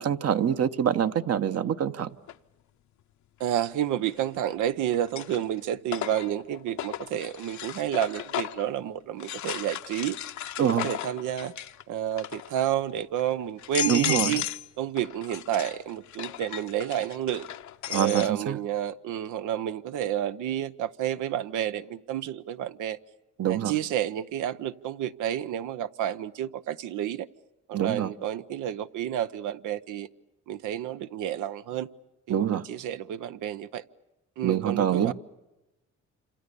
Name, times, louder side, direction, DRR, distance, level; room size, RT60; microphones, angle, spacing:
voice 1, 0.0-2.1 10.6-10.9 13.9-14.4 17.9-18.6 23.4-23.7 27.7-28.1 32.3-32.6 34.4-35.1, right 9 dB, 55° right, 1.1 m, -25 dB
sound 1, 2.3-2.4 4.1-4.5 4.9-8.7 9.2-11.8 12.1-12.6 13.2-13.3 13.6-14.7 15.0-18.3, left 11 dB, 70° left, 0.9 m, -35 dB
voice 2, 3.4-10.2 10.6-11.5 11.9-14.4 14.8-17.5 17.9-23.0 23.5-27.3 27.7-30.1 30.5-31.9 32.3-33.8 34.4-35.1, right 11 dB, 85° right, 0.9 m, -30 dB
28.0 x 27.0 x 6.9 m
cardioid pair, 90°, 30 cm